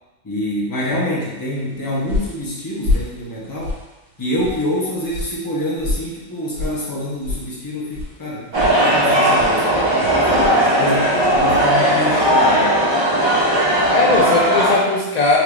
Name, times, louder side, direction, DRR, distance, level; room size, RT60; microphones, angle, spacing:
voice 1, 0.2-3.8 4.2-9.8 10.2-12.8, left 1 dB, 25° left, -6 dB, 0.5 m, -26 dB
sound 1, 1.5-11.6, left 2 dB, 75° right, 1.4 m, -30 dB
sound 2, 8.5-14.8, equal, 35° right, 0.5 m, -16 dB
voice 2, 10.2-10.9 13.9-15.4, left 3 dB, 85° left, -4 dB, 0.3 m, -20 dB
3.6 x 3.1 x 2.3 m, 1.1 s
omnidirectional pair, 1.3 m